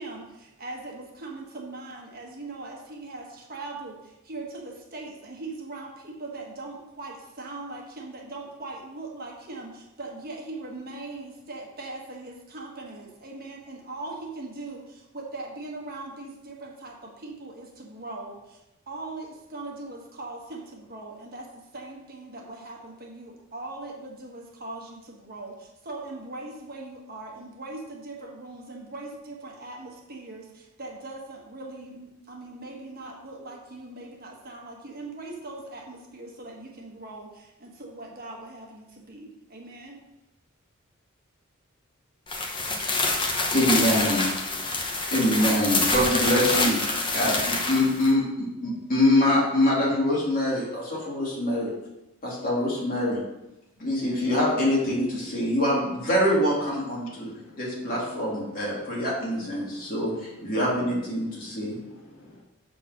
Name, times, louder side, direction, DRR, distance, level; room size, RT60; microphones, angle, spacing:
voice 1, 0.0-40.0, right 2 dB, 45° right, -1 dB, 1.3 m, -40 dB
sound 1, 42.3-48.1, left 3 dB, 25° left, 0.9 m, -26 dB
voice 2, 43.5-44.5 45.1-51.7 52.2-53.2 53.8-61.8, left 1 dB, 40° left, -5 dB, 2.5 m, -25 dB
voice 3, 57.0-57.6 57.9-58.0 59.0-59.1 59.4-59.9 60.4-60.9 61.3-62.4, left 1 dB, 70° left, -2 dB, 1.5 m, -49 dB
6.8 x 3.8 x 6.2 m, 0.94 s
head